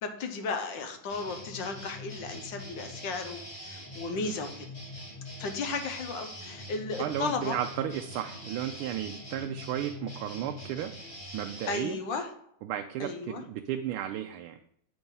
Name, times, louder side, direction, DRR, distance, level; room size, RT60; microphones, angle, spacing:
voice 1, 0.0-4.6 5.4-7.6 11.7-12.3 13.0-13.4, left 4 dB, 65° left, 6 dB, 1.4 m, -34 dB
sound 1, 1.1-11.8, left 1 dB, 25° left, 1.9 m, -43 dB
voice 2, 7.0-10.9 11.3-12.0 12.6-14.6, right 11 dB, 85° right, 6 dB, 1.4 m, -34 dB
8.1 x 4.6 x 5.4 m, 0.70 s
omnidirectional pair, 2.3 m